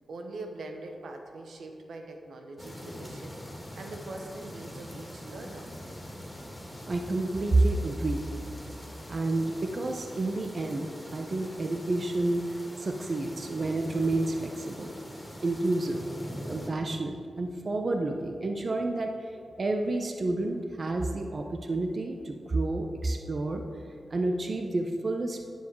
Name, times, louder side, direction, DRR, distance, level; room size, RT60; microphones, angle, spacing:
voice 1, 0.1-3.4 3.7-5.7, right 2 dB, 80° right, 4 dB, 1.0 m, -42 dB
sound 1, 2.6-16.7, equal, 15° left, 2.4 m, -43 dB
voice 2, 6.9-8.2 9.1-12.4 12.8-14.9 15.4-16.0 16.5-19.3 19.6-23.6 24.1-25.5, right 2 dB, 55° right, 4 dB, 0.8 m, -29 dB
10.0 x 7.5 x 4.7 m, 2.2 s
supercardioid pair, 40°, 0 cm